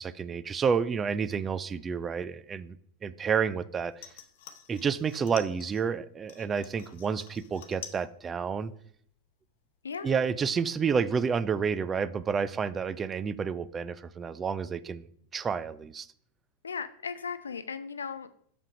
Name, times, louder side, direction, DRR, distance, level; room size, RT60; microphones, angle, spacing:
voice 1, 0.0-2.8 3.0-4.1 4.7-8.7 10.0-16.1, right 6 dB, 20° right, 16 dB, 0.4 m, -30 dB
sound 1, 3.9-5.9 6.3-8.1 8.4-8.9 9.3-9.4, left 9 dB, 55° left, 0.8 m, -48 dB
voice 2, 16.6-18.4, left 6 dB, 70° left, 12 dB, 0.4 m, -37 dB
6.3 x 5.5 x 4.9 m, 0.64 s
figure-of-eight pair, 90°, 0 cm